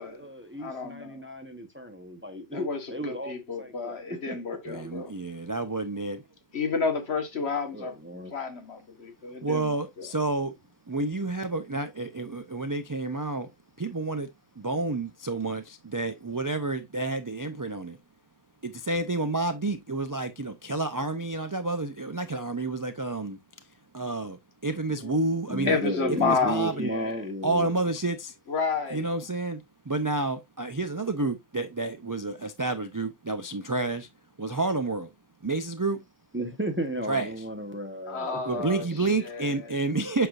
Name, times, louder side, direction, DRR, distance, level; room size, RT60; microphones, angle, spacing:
voice 1, 0.0-4.4 7.7-8.3 25.5-27.7 36.3-38.6 39.1-39.2, right 1 dB, 10° right, 1.1 m, -34 dB
voice 2, 0.6-1.2 2.5-5.1 6.5-7.9 8.3-9.7 10.0-10.1 25.0-25.1 25.6-27.2 28.5-29.1 38.1-38.9 39.2-39.7, left 4 dB, 60° left, 1.6 m, -30 dB
voice 3, 4.7-6.2 9.4-10.5 10.9-13.5 13.8-14.3 14.6-18.0 18.6-23.4 23.9-25.8 26.1-26.9 27.4-28.3 28.9-34.1 34.4-35.1 35.4-36.0 37.1-37.3 38.5-40.3, right 2 dB, 30° right, 0.3 m, -30 dB
7.8 x 6.0 x 2.5 m
omnidirectional pair, 1.3 m